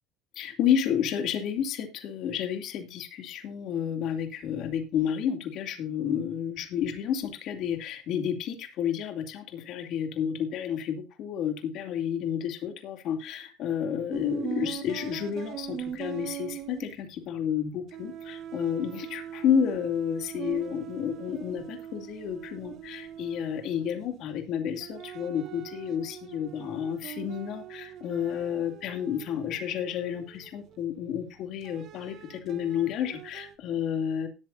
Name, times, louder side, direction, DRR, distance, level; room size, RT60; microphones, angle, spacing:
voice 1, 0.3-34.3, left 8 dB, 60° left, 6 dB, 2.4 m, -31 dB
sound 1, 14.1-17.6 17.9-24.3 24.8-31.0 31.6-33.6, right 10 dB, 50° right, 1.5 m, -42 dB
18.5 x 8.4 x 2.6 m, 0.29 s
supercardioid pair, 115°, 0 cm